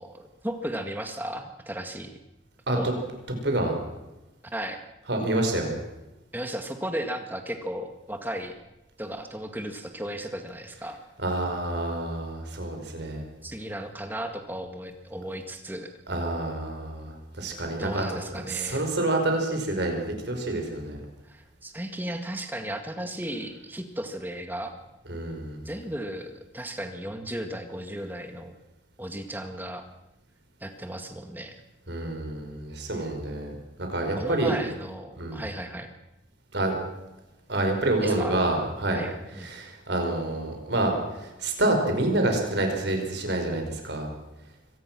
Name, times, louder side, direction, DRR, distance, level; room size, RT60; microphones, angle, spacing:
voice 1, 0.0-2.2 2.7-3.0 4.4-4.8 6.3-8.5 9.0-11.0 13.4-15.9 17.8-18.9 21.2-24.8 25.6-28.5 29.0-29.8 30.6-31.6 32.9-33.1 34.2-35.9 38.0-38.4 38.9-39.5, right 1 dB, 10° right, 6 dB, 1.9 m, -35 dB
voice 2, 3.4-3.8 5.1-5.8 11.2-13.2 16.1-21.0 25.1-25.6 31.9-33.5 33.8-34.6 35.2-35.4 36.5-36.8 37.5-39.0 39.4-44.1, right 2 dB, 60° right, 3 dB, 5.2 m, -28 dB
24.5 x 18.5 x 6.2 m, 1.0 s
head